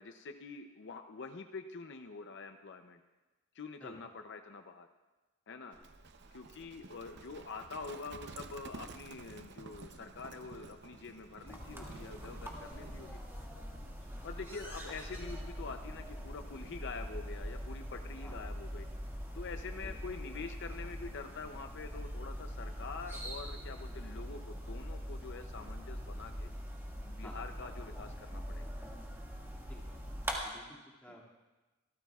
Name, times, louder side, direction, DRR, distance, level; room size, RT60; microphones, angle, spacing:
voice 1, 0.0-3.0 3.5-4.9 5.5-5.8 6.3-13.2 14.2-18.9 19.3-26.5 27.1-28.7 31.1-31.2, left 4 dB, 60° left, 6 dB, 0.6 m, -46 dB
Livestock farm animals working animals, 5.7-13.1, right 3 dB, 55° right, 0.7 m, -51 dB
sound 1, 11.5-30.4, equal, 10° right, 1.8 m, -43 dB
voice 2, 12.5-13.1 14.0-14.2 18.2-18.4 19.8-20.0 27.2-27.4 29.7-30.0 30.4-31.2, equal, 5° left, -3 dB, 2.3 m, -54 dB
25.5 x 13.5 x 2.4 m, 1.2 s
head